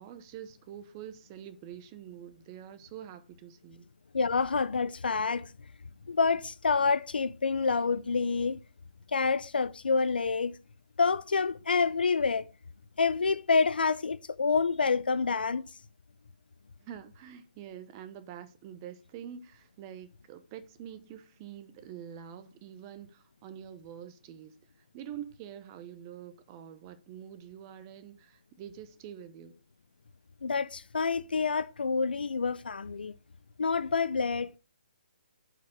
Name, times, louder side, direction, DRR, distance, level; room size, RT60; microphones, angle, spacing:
voice 1, 0.0-3.9 16.8-29.6, right 9 dB, 25° right, 0.7 m, -46 dB
voice 2, 4.1-5.5 6.1-8.6 9.1-10.5 11.0-12.4 13.0-15.7 30.4-33.1 33.6-34.6, left 4 dB, 85° left, 0.5 m, -27 dB
5.7 x 4.7 x 6.4 m
hypercardioid pair, 155°, 5 cm